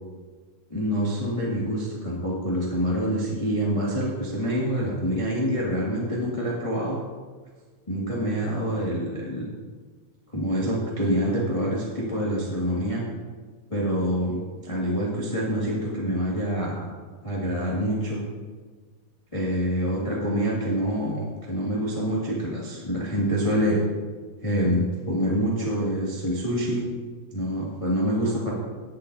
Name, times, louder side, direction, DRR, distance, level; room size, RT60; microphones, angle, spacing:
voice 1, 0.7-7.0 7.9-9.5 10.3-13.0 13.7-16.9 17.2-18.2 19.3-23.8 24.4-26.8 27.3-28.5, equal, 15° left, -6 dB, 1.0 m, -26 dB
18.5 x 7.9 x 2.7 m, 1.4 s
omnidirectional pair, 4.2 m